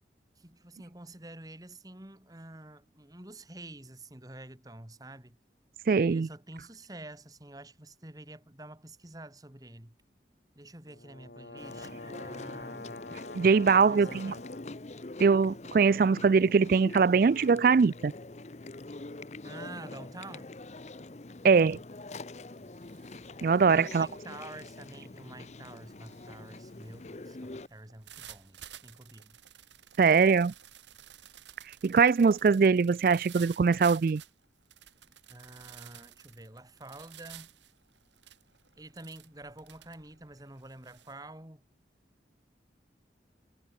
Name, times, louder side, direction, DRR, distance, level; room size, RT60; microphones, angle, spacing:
voice 1, 0.4-5.4 6.1-10.0 10.6-12.9 13.8-14.4 19.4-20.5 23.4-29.4 35.3-37.5 38.8-41.6, right 2 dB, 20° right, 1.9 m, -48 dB
voice 2, 5.9-6.3 13.3-14.3 15.2-18.1 21.4-21.8 23.4-24.1 30.0-30.5 31.8-34.2, right 5 dB, 50° right, 0.3 m, -22 dB
sound 1, 10.9-14.8, left 2 dB, 65° left, 2.1 m, -45 dB
Chewing mastication, 11.6-27.7, left 2 dB, 40° left, 0.8 m, -45 dB
sound 2, 21.5-21.8 22.2-41.1, right 11 dB, 90° right, 3.2 m, -53 dB
head